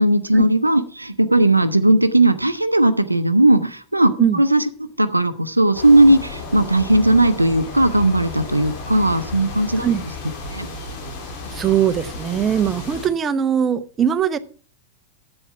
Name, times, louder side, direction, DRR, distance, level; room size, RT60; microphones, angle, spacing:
voice 1, 0.0-9.9 10.5-10.7, right 1 dB, 85° right, 0.7 m, -17 dB
sound 1, 5.7-13.1, left 3 dB, 45° left, 3.2 m, -33 dB
voice 2, 11.5-14.4, right 8 dB, 25° right, 0.8 m, -20 dB
10.5 x 8.0 x 5.9 m
figure-of-eight pair, 90°, 0 cm